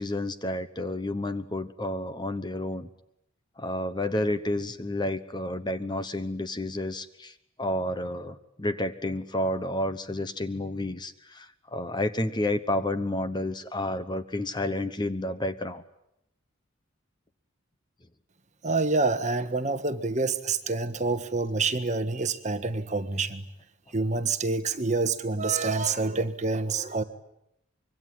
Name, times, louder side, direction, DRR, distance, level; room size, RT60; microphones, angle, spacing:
voice 1, 0.0-2.9 3.6-15.8, left 1 dB, 20° left, 11 dB, 1.0 m, -30 dB
voice 2, 18.6-23.4 23.9-27.0, right 3 dB, 35° right, 9 dB, 1.5 m, -27 dB
25.5 x 23.5 x 9.5 m, 0.81 s
head